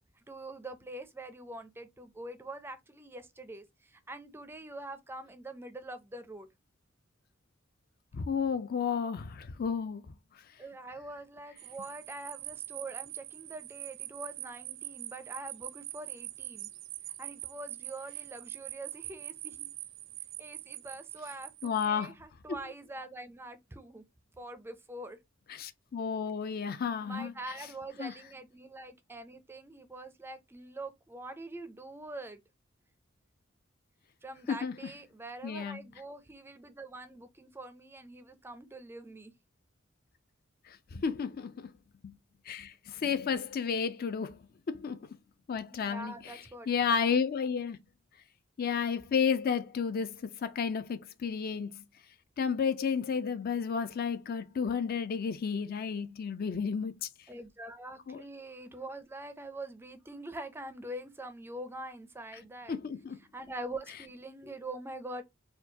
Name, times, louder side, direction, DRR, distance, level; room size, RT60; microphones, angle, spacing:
voice 1, 0.3-6.5 10.6-16.7 17.2-19.7 20.4-24.0 24.4-25.2 27.0-32.4 34.2-39.3 45.7-46.7 57.3-62.8 63.3-65.2, right 2 dB, 10° right, 0.4 m, -44 dB
voice 2, 8.1-10.0 21.6-22.1 22.5-22.6 25.5-27.3 28.0-28.1 34.5-34.7 35.4-35.8 40.7-41.7 42.0-42.2 42.5-45.1 45.5-47.8 48.6-51.8 52.4-57.1 58.1-58.2 62.7-63.2, left 6 dB, 50° left, 0.4 m, -32 dB
sound 1, 11.6-21.9, right 16 dB, 70° right, 0.5 m, -44 dB
4.4 x 2.2 x 2.7 m
head